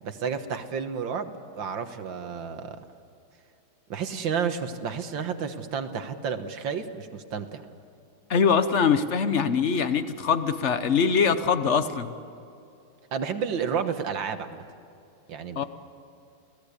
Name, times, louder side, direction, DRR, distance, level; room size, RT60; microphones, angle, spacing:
voice 1, 0.0-2.8 3.9-7.6 13.1-14.6 15.3-15.6, right 6 dB, 70° right, 8 dB, 1.9 m, -31 dB
voice 2, 8.3-12.1 15.6-15.7, left 6 dB, 45° left, 11 dB, 1.0 m, -23 dB
29.0 x 17.0 x 8.3 m, 2.6 s
omnidirectional pair, 2.2 m